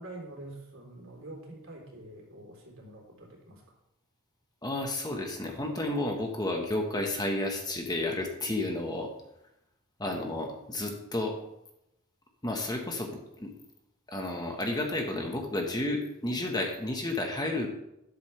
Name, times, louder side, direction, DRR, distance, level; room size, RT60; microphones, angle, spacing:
voice 1, 0.0-3.8, right 1 dB, 60° right, 0 dB, 3.6 m, -46 dB
voice 2, 4.6-9.1 10.0-11.4 12.4-13.5 14.1-17.7, left 1 dB, 20° left, 2 dB, 1.4 m, -31 dB
12.5 x 11.5 x 3.4 m, 0.84 s
head